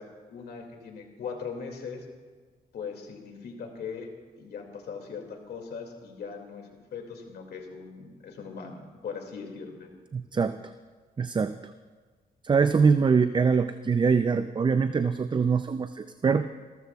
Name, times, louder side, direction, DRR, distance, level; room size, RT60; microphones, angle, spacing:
voice 1, 0.0-2.1 2.7-9.9, left 5 dB, 80° left, 3 dB, 2.3 m, -40 dB
voice 2, 10.1-10.6 11.2-11.7 12.4-16.5, right 5 dB, 30° right, 10 dB, 0.4 m, -23 dB
28.5 x 13.5 x 2.3 m, 1.4 s
cardioid pair, 85°, 16 cm